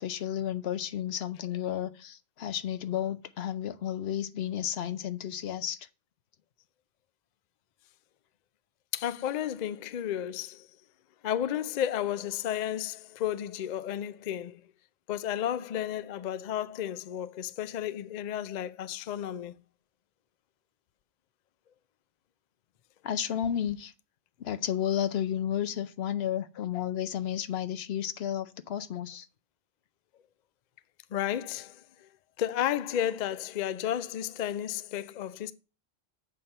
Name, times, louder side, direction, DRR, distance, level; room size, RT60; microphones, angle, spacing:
voice 1, 0.0-5.9 23.0-23.9 24.4-29.3, left 10 dB, 75° left, 0.9 m, -32 dB
voice 2, 8.9-10.7 11.2-14.6 15.1-19.5 31.1-32.1 32.4-35.5, left 10 dB, 55° left, 0.5 m, -32 dB
7.5 x 4.3 x 6.5 m
omnidirectional pair, 1.1 m